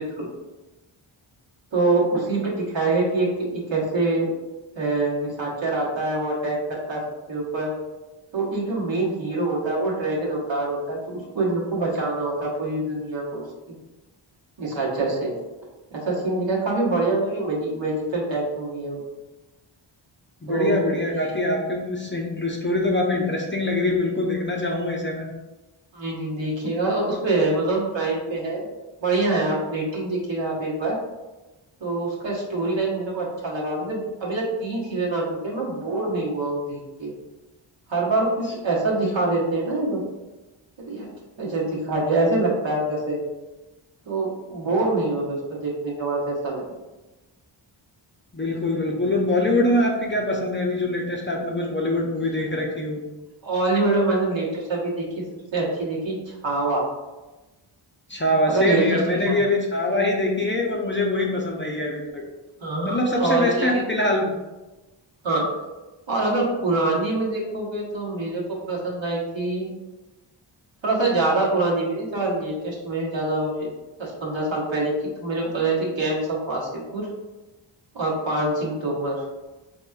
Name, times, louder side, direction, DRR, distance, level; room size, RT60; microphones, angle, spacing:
voice 1, 1.7-4.3 4.7-7.0 7.3-7.7 8.3-13.4 14.6-15.3 15.9-19.0 20.5-20.8 21.2-21.3 25.9-28.7 29.0-30.9 31.8-37.1 37.9-40.0 40.8-41.1 41.4-43.2 44.1-46.6 53.4-55.2 55.5-56.9 58.5-59.3 62.6-63.8 65.2-65.5 66.1-69.7 70.8-73.7 74.0-74.9 75.2-77.1 77.9-79.2, right 2 dB, 60° right, -5 dB, 1.3 m, -25 dB
voice 2, 20.4-25.3 48.3-53.0 58.1-62.2 62.9-64.4, left 1 dB, 25° left, -1 dB, 0.6 m, -23 dB
4.0 x 3.0 x 2.3 m, 1.1 s
cardioid pair, 55°, 50 cm